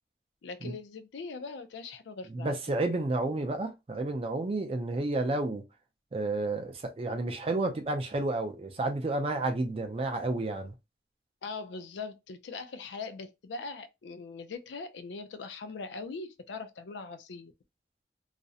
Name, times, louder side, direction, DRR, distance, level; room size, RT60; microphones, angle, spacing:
voice 1, 0.4-2.8 11.4-17.5, left 4 dB, 80° left, 0.4 m, -41 dB
voice 2, 2.3-5.6 6.1-10.7, right 2 dB, 30° right, 0.4 m, -31 dB
2.4 x 2.0 x 2.6 m
head